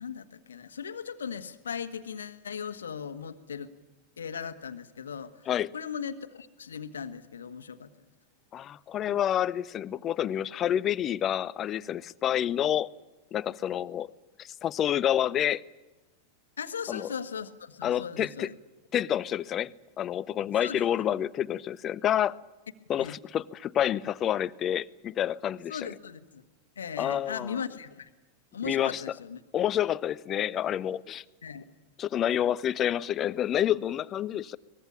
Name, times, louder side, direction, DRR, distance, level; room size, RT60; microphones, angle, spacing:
voice 1, 0.0-3.7 4.2-5.5 5.7-7.9 16.6-18.5 20.6-20.8 23.0-23.2 25.7-26.4 26.8-28.1 28.5-29.4 31.4-31.6, left 7 dB, 70° left, 10 dB, 1.5 m, -38 dB
voice 2, 8.5-12.9 13.3-14.1 14.4-15.6 16.9-17.1 17.8-18.5 18.9-22.4 22.9-25.9 27.0-27.6 28.6-29.0 29.5-31.2 32.0-34.6, left 10 dB, 30° left, 20 dB, 0.8 m, -28 dB
23.5 x 20.5 x 8.8 m, 1.1 s
figure-of-eight pair, 90°, 0 cm